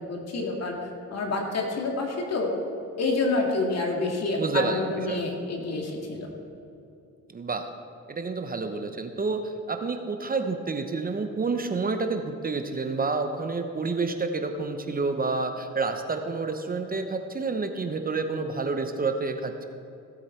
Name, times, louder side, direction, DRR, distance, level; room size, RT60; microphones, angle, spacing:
voice 1, 0.1-0.8 1.1-2.5 3.0-6.3, left 3 dB, 60° left, 0 dB, 2.3 m, -28 dB
voice 2, 4.4-5.2 7.3-7.7 8.1-19.7, right 3 dB, 30° right, 6 dB, 0.9 m, -29 dB
16.5 x 7.9 x 4.5 m, 2.7 s
cardioid pair, 90°, 30 cm